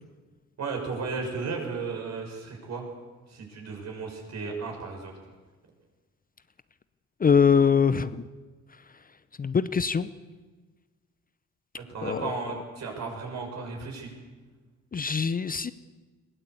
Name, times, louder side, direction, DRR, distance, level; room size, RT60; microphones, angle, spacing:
voice 1, 0.6-2.9 3.3-5.1 11.8-14.1, right 4 dB, 60° right, 2 dB, 6.6 m, -34 dB
voice 2, 7.2-8.3 9.4-10.1 12.0-12.3 14.9-15.7, left 6 dB, 30° left, 15 dB, 0.7 m, -23 dB
21.5 x 17.0 x 8.3 m, 1.3 s
cardioid pair, 90°, 30 cm